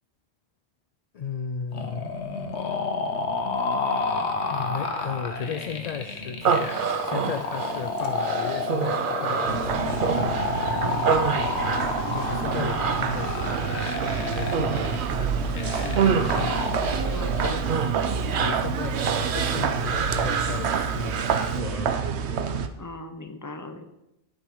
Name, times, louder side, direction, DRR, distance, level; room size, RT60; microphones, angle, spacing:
voice 1, 1.1-2.1 4.4-6.7 7.0-10.4 12.1-13.8 14.3-16.6 18.3-22.0, left 6 dB, 50° left, 8 dB, 0.5 m, -35 dB
sound 1, 1.7-17.7, left 4 dB, 90° left, 1.4 m, -30 dB
Human voice, 6.4-21.6, right 6 dB, 55° right, 0.7 m, -29 dB
sound 2, 9.5-22.7, right 6 dB, 85° right, 1.0 m, -28 dB
voice 2, 10.8-11.2 17.1-17.7 22.8-23.8, left 2 dB, 20° left, 6 dB, 0.8 m, -38 dB
11.5 x 6.2 x 5.4 m, 0.89 s
omnidirectional pair, 1.1 m